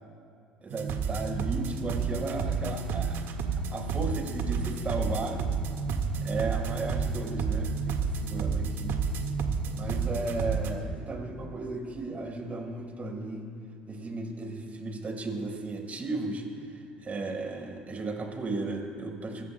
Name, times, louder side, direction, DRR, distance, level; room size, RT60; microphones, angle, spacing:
voice 1, 0.6-3.2 3.7-5.4 6.2-9.0 9.7-13.5 13.8-19.4, right 3 dB, 35° right, 1 dB, 4.2 m, -35 dB
sound 1, 0.7-10.7, right 5 dB, 60° right, 1.6 m, -30 dB
23.0 x 20.5 x 2.2 m, 2.6 s
hypercardioid pair, 60°, 4 cm